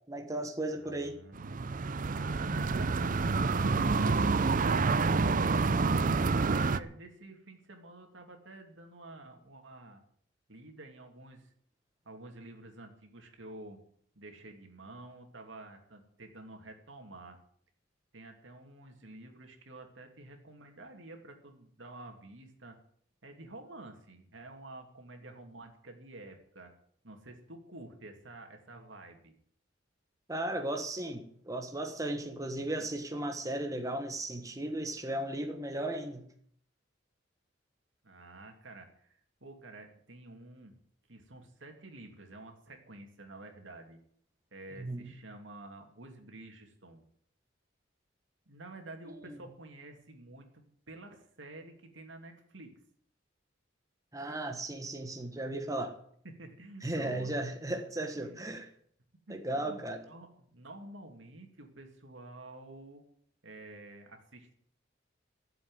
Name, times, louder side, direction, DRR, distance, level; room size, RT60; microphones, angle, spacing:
voice 1, 0.1-1.2 30.3-36.2 44.8-45.1 49.1-49.4 54.1-55.9 56.8-58.7 59.3-60.0, right 1 dB, 20° right, 1.4 m, -36 dB
voice 2, 0.7-1.6 2.1-6.0 6.5-10.0 10.5-11.5 12.0-13.8 14.1-17.4 18.1-22.8 23.2-26.7 27.0-29.3 32.6-32.9 38.0-40.8 41.1-44.0 44.5-47.0 48.5-52.8 55.7-55.8 56.2-57.3 57.7-57.8 58.2-58.4 59.3-63.0 63.4-64.5, right 2 dB, 80° right, 2.7 m, -50 dB
sound 1, 1.3-6.8, right 4 dB, 45° right, 0.5 m, -28 dB
13.0 x 7.7 x 9.2 m
head